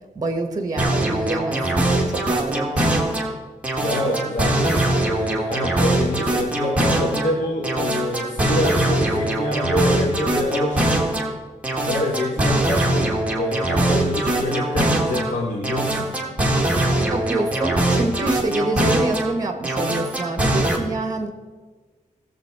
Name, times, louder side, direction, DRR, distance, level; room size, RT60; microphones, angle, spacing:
voice 1, 0.1-2.9 4.0-4.2 16.9-21.3, right 2 dB, 30° right, 6 dB, 1.4 m, -27 dB
sound 1, 0.8-3.3 3.6-7.3 7.6-11.3 11.6-15.3 15.6-19.3 19.6-20.8, right 1 dB, 10° right, 1.6 m, -22 dB
voice 2, 3.8-11.1 11.9-16.1, left 1 dB, 70° left, -2 dB, 1.7 m, -26 dB
18.5 x 7.4 x 4.8 m, 1.4 s
wide cardioid pair, 175°, 13 cm